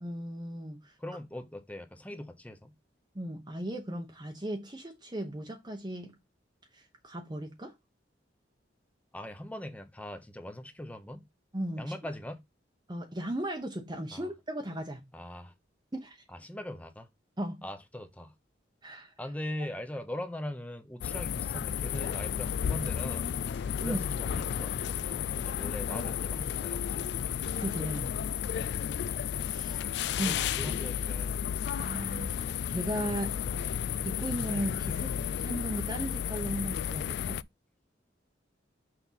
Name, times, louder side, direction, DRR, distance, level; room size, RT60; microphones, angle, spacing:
voice 1, 0.0-0.9 3.1-6.2 6.7-7.7 11.5-11.9 12.9-15.1 15.9-16.2 17.4-17.6 18.8-19.1 23.8-24.0 27.6-28.2 29.4-29.8 30.2-30.4 31.7-33.4 34.0-35.1 35.4-37.4, right 1 dB, 25° right, 0.9 m, -36 dB
voice 2, 1.0-2.7 9.1-11.2 11.8-12.4 14.1-14.3 15.1-15.5 16.3-17.1 17.6-18.3 19.2-27.2 29.7-31.4, left 1 dB, 10° left, 0.9 m, -41 dB
sound 1, 21.0-37.4, left 8 dB, 60° left, 0.3 m, -33 dB
6.2 x 4.3 x 4.1 m
head